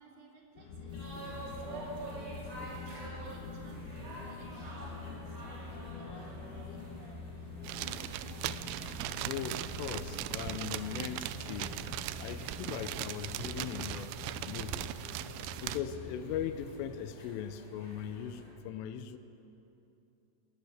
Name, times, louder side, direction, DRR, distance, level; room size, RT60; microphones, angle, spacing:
voice 1, 0.0-8.2 13.1-13.3, right 3 dB, 50° right, -2 dB, 4.6 m, -57 dB
sound 1, 0.6-16.5, left 4 dB, 60° left, 2.5 m, -46 dB
sound 2, 0.9-18.5, right 1 dB, 20° right, 5.5 m, -48 dB
sound 3, 7.6-15.8, right 14 dB, 80° right, 2.9 m, -39 dB
voice 2, 9.3-11.8 12.2-14.1 14.5-14.9 15.3-19.2, left 9 dB, 85° left, 10 dB, 3.5 m, -39 dB
21.0 x 19.0 x 8.0 m, 2.9 s
omnidirectional pair, 5.6 m